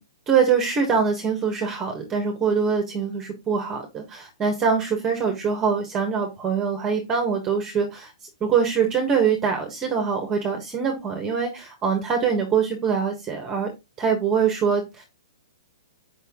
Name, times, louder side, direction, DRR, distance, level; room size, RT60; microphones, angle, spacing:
voice 1, 0.3-8.1 8.4-13.7 14.0-15.0, right 6 dB, 20° right, 4 dB, 1.4 m, -23 dB
6.7 x 5.6 x 3.7 m, 0.23 s
hypercardioid pair, 160°, 2 cm